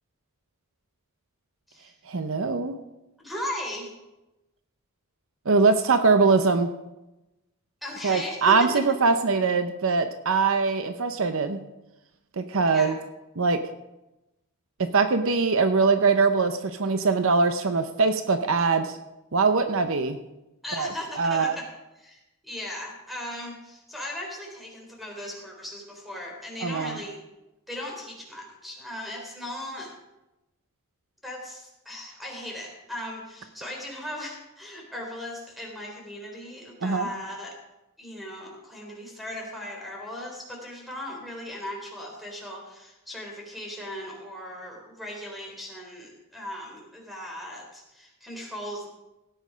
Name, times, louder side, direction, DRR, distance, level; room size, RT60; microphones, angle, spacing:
voice 1, 2.0-2.8 5.5-6.7 8.0-11.6 12.4-13.0 13.4-13.6 14.8-19.0 19.3-20.2 20.8-21.6 26.6-27.0 36.8-37.1, right 4 dB, 60° right, 9 dB, 0.7 m, -22 dB
voice 2, 3.2-3.9 7.8-8.7 12.7-12.9 20.6-21.7 22.0-27.2 27.7-29.9 31.2-37.5 38.0-48.9, left 1 dB, ahead, -1 dB, 3.6 m, -37 dB
17.0 x 9.0 x 5.2 m, 0.98 s
head